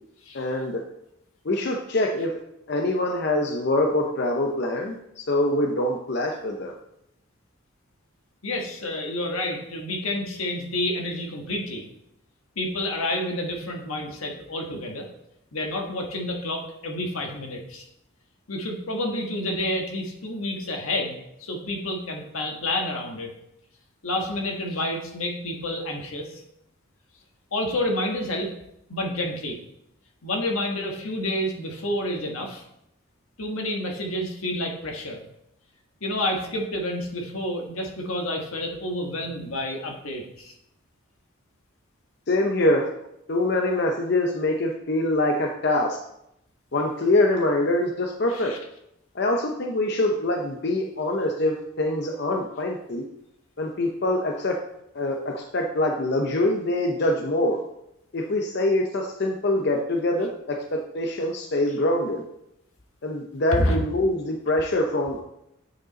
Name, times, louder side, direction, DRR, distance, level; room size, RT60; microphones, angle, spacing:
voice 1, 0.3-0.8 1.5-2.3 2.7-6.7 42.3-42.9 43.3-46.0 46.7-48.5 49.2-53.0 53.6-54.6 54.9-57.6 58.1-62.2 63.0-65.2, left 1 dB, 50° left, 2 dB, 0.6 m, -24 dB
voice 2, 8.4-11.9 12.6-15.1 15.5-17.8 18.5-23.3 24.0-26.4 27.5-28.5 28.9-29.6 30.2-32.6 33.4-35.2 36.0-40.5 48.3-48.6 63.5-63.8, left 1 dB, 80° left, 1 dB, 1.4 m, -29 dB
8.9 x 5.2 x 4.0 m, 0.81 s
head